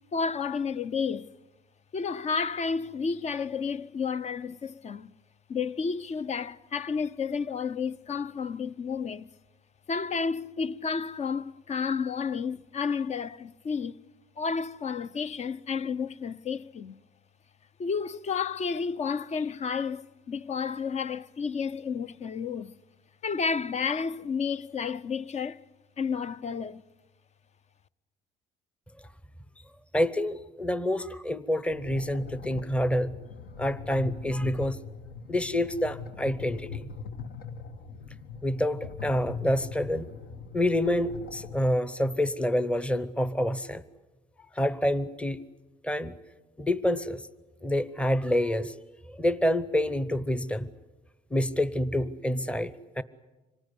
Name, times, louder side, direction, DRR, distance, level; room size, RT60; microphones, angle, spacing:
voice 1, 0.1-1.3 1.9-5.1 5.5-9.3 9.9-14.0 14.4-17.0 17.8-22.8 23.2-25.6 26.0-26.8, left 5 dB, 40° left, 0.8 m, -31 dB
voice 2, 29.9-33.1 33.6-34.8 35.3-36.9 38.4-40.1 40.5-43.8 44.5-45.5 45.8-46.2 46.6-47.2 47.6-48.8 49.1-50.7 51.3-53.0, left 1 dB, 5° left, 0.9 m, -27 dB
sound 1, 31.7-41.7, left 5 dB, 65° left, 1.6 m, -41 dB
26.5 x 19.0 x 9.8 m
cardioid pair, 110°, 17 cm